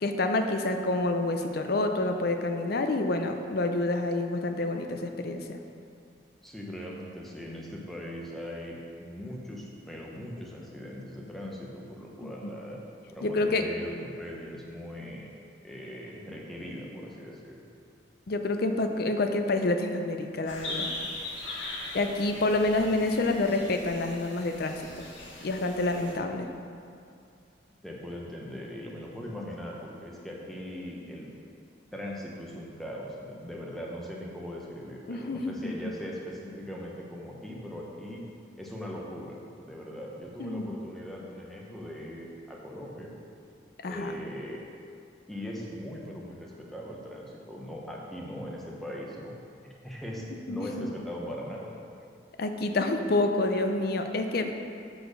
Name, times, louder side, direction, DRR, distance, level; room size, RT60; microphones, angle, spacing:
voice 1, 0.0-5.6 12.2-12.5 13.2-13.6 18.3-20.9 21.9-25.0 25.4-26.5 35.1-35.7 40.4-40.6 43.8-44.1 50.5-50.9 52.4-54.5, left 2 dB, 50° left, 6 dB, 0.5 m, -28 dB
voice 2, 6.4-12.8 13.1-15.3 15.6-17.7 27.8-31.3 31.9-38.2 38.6-43.1 43.9-44.6 45.3-49.3 49.6-51.7, equal, ahead, -3 dB, 0.9 m, -40 dB
sound 1, 20.5-26.1, left 2 dB, 75° left, 1.4 m, -39 dB
6.8 x 4.2 x 6.5 m, 2.4 s
head